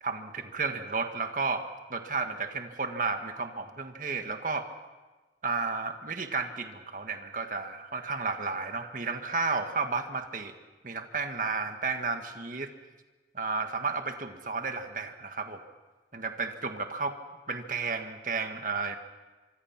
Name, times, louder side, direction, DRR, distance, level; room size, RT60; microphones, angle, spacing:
voice 1, 0.0-1.6 1.9-4.7 5.4-10.5 10.8-12.7 13.3-15.6 16.1-17.2 17.5-19.0, right 4 dB, 45° right, 6 dB, 1.7 m, -32 dB
25.5 x 24.0 x 5.9 m, 1.3 s
head